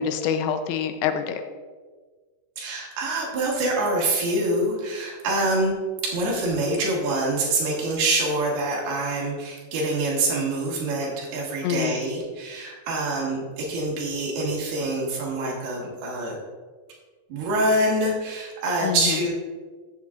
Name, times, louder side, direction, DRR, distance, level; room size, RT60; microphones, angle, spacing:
voice 1, 0.0-1.4 11.6-12.0 18.8-19.2, left 8 dB, 85° left, 8 dB, 2.8 m, -26 dB
voice 2, 2.6-5.8 6.1-16.4 17.3-19.3, right 2 dB, 70° right, -3 dB, 3.1 m, -25 dB
12.5 x 7.4 x 2.4 m, 1.4 s
omnidirectional pair, 5.1 m